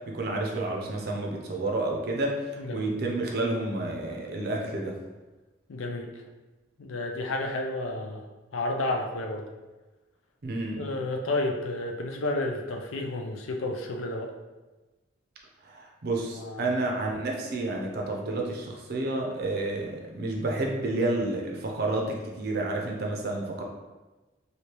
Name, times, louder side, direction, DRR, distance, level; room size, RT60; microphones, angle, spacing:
voice 1, 0.1-2.4 2.7-5.0 10.4-10.9 15.6-23.6, right 2 dB, 50° right, -1 dB, 0.5 m, -30 dB
voice 2, 2.6-2.9 5.7-6.1 6.8-8.2 8.5-9.4 10.8-14.3 16.3-16.7, left 2 dB, 85° left, 2 dB, 0.4 m, -31 dB
3.2 x 2.7 x 2.9 m, 1.2 s
head